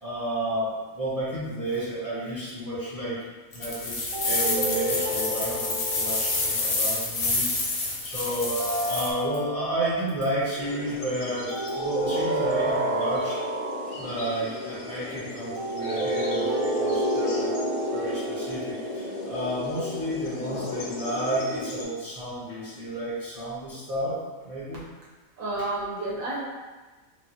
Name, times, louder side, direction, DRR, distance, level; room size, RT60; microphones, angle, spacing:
voice 1, 0.0-3.2 3.5-13.4 14.0-24.8, right 1 dB, 30° right, -11 dB, 0.8 m, -32 dB
sound 1, 3.5-9.1, left 3 dB, 60° left, 0.7 m, -28 dB
sound 2, 4.1-6.6 8.3-10.1 11.5-14.2 15.6-20.1, right 1 dB, 85° right, 1.1 m, -29 dB
sound 3, 10.5-21.9, left 2 dB, 90° left, 1.1 m, -37 dB
voice 2, 25.4-26.4, right 2 dB, 70° right, -7 dB, 1.3 m, -30 dB
3.0 x 2.4 x 2.7 m, 1.3 s
omnidirectional pair, 1.5 m